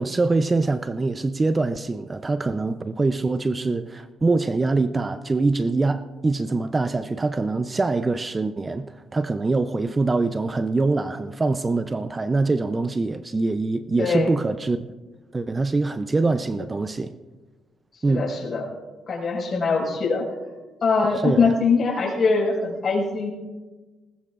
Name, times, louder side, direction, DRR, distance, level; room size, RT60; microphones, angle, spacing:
voice 1, 0.0-14.8 15.3-17.1 18.0-18.3 21.2-21.6, right 3 dB, 25° right, 0.6 m, -24 dB
voice 2, 14.0-14.3 18.1-18.7 19.1-20.2 20.8-23.3, left 4 dB, 50° left, 5.3 m, -22 dB
20.5 x 19.0 x 2.5 m
cardioid pair, 90°, 0 cm